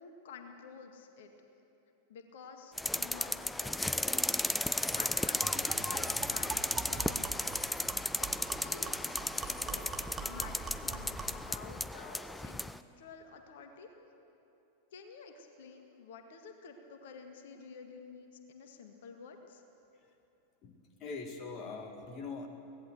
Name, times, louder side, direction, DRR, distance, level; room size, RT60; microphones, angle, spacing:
voice 1, 0.0-1.3 2.1-4.2 4.9-7.4 8.2-12.7 13.0-13.9 14.9-19.6, left 5 dB, 55° left, 5 dB, 2.0 m, -50 dB
sound 1, 2.8-12.8, left 1 dB, 5° left, 0.6 m, -34 dB
sound 2, 4.5-4.6 4.9-5.0 5.4-11.4, right 3 dB, 20° right, 2.4 m, -43 dB
voice 2, 20.6-22.5, left 4 dB, 35° left, 5 dB, 1.9 m, -42 dB
24.0 x 18.0 x 8.0 m, 2.9 s
figure-of-eight pair, 90°, 0 cm